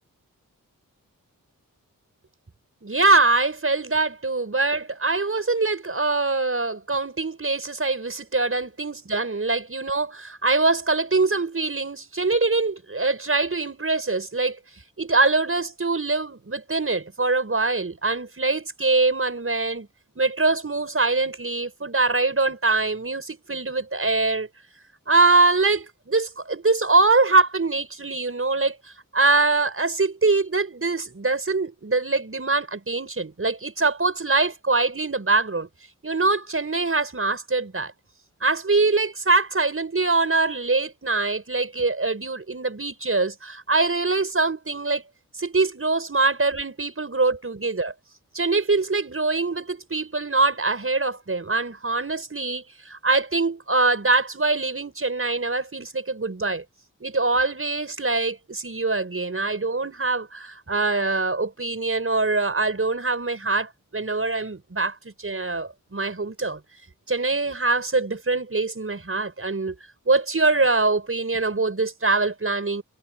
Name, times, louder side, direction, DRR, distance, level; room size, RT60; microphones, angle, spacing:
voice 1, 2.8-14.6 15.0-19.9 20.2-24.5 25.1-28.8 29.1-35.7 36.0-37.9 38.4-45.0 45.4-47.9 48.3-56.6 57.0-66.6 67.1-69.7 70.1-72.8, right 3 dB, 40° right, 6.0 m, -23 dB
wide cardioid pair, 70°, 34 cm